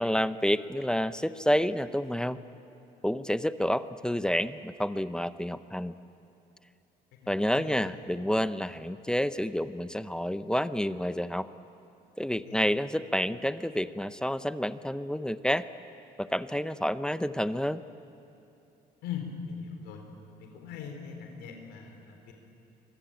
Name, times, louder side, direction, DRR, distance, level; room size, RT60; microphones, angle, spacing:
voice 1, 0.0-2.4 3.0-5.9 7.3-11.5 12.2-15.7 16.2-17.8, equal, 5° left, 12 dB, 0.7 m, -29 dB
voice 2, 7.2-7.7 12.4-12.6 19.0-20.0 20.4-22.3, left 7 dB, 90° left, 3 dB, 3.9 m, -40 dB
26.0 x 24.0 x 9.1 m, 2.7 s
cardioid pair, 110°, 17 cm